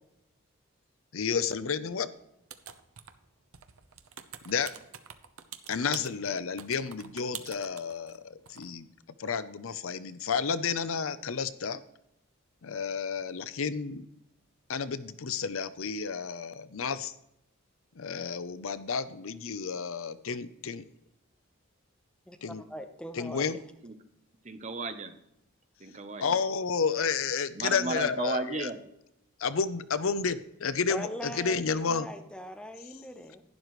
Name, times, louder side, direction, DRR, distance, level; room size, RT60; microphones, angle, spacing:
voice 1, 1.1-2.1 4.5-4.7 5.7-8.9 9.2-11.8 12.6-14.1 14.7-17.1 18.0-20.8 22.4-22.6 23.1-23.6 26.2-28.7 29.4-32.1, left 5 dB, 75° left, 14 dB, 0.6 m, -31 dB
sound 1, 2.5-3.3 3.5-8.2 8.5-8.7, right 9 dB, 80° right, 0.8 m, -45 dB
voice 2, 22.3-23.6 30.9-33.4, equal, 5° left, 5 dB, 0.9 m, -41 dB
voice 3, 24.4-25.1 25.8-26.3 27.6-28.8, right 3 dB, 35° right, 8 dB, 0.8 m, -34 dB
11.5 x 10.5 x 3.2 m, 0.82 s
head